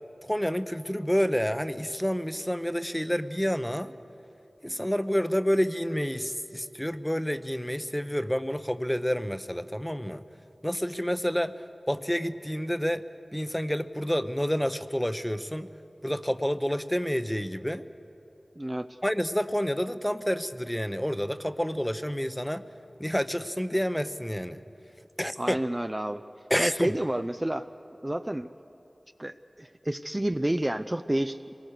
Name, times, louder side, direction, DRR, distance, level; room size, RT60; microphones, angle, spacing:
voice 1, 0.2-3.9 4.6-10.2 10.6-11.5 11.9-13.0 13.3-15.7 16.0-17.8 19.0-22.6 23.0-24.6 25.2-25.6 26.5-26.9, equal, 10° left, 11 dB, 0.8 m, -29 dB
voice 2, 18.6-19.0 25.4-26.2 26.6-27.7 28.0-28.5 29.2-31.5, right 1 dB, 25° right, 9 dB, 0.5 m, -30 dB
26.0 x 20.0 x 6.6 m, 3.0 s
wide cardioid pair, 50°, 0 cm